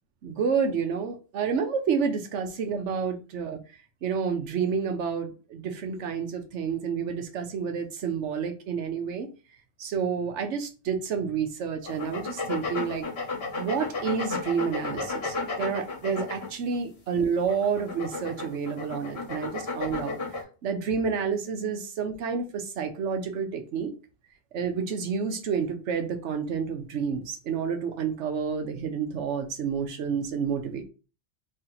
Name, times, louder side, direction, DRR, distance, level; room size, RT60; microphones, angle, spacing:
voice 1, 0.2-3.6 4.0-9.3 9.8-13.1 13.6-20.2 20.6-23.9 24.5-30.8, right 6 dB, 70° right, 5 dB, 1.0 m, -29 dB
sound 1, 11.8-16.8 17.4-20.4, left 3 dB, 55° left, 1.4 m, -33 dB
3.2 x 2.8 x 3.8 m, 0.34 s
omnidirectional pair, 1.3 m